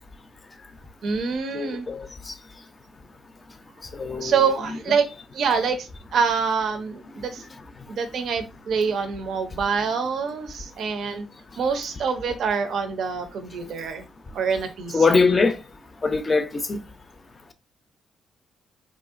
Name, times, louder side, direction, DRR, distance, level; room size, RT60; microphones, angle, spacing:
voice 1, 1.0-1.9 4.2-5.1 5.3-7.4 7.9-11.3 11.6-14.0 14.3-15.2, right 5 dB, 65° right, 0.5 m, -26 dB
voice 2, 1.5-2.0 4.0-4.3 14.9-15.5 16.0-16.8, left 4 dB, 30° left, 0.4 m, -21 dB
3.0 x 2.6 x 2.4 m
cardioid pair, 90°, 0 cm